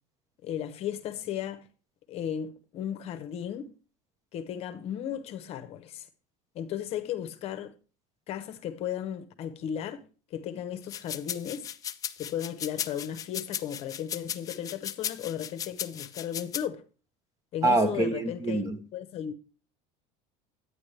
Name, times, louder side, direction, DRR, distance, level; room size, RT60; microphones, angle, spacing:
voice 1, 0.4-1.7 2.1-3.7 4.3-6.1 6.5-7.7 8.3-10.0 10.3-11.7 12.2-16.8 17.5-18.7 18.9-19.3, left 9 dB, 40° left, 0.9 m, -35 dB
sound 1, 10.8-16.6, left 9 dB, 20° left, 0.4 m, -36 dB
voice 2, 17.6-18.8, right 2 dB, 20° right, 0.7 m, -25 dB
9.6 x 9.4 x 3.2 m
cardioid pair, 170°, 16 cm